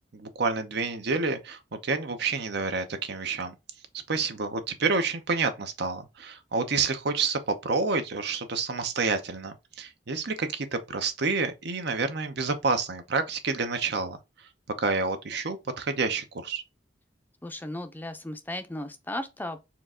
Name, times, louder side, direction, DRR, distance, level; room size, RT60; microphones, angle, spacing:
voice 1, 0.1-3.5 4.1-14.2 14.8-16.6, right 4 dB, 65° right, 0.7 m, -29 dB
voice 2, 17.4-19.7, left 1 dB, 10° left, 0.5 m, -36 dB
4.5 x 2.5 x 3.6 m
head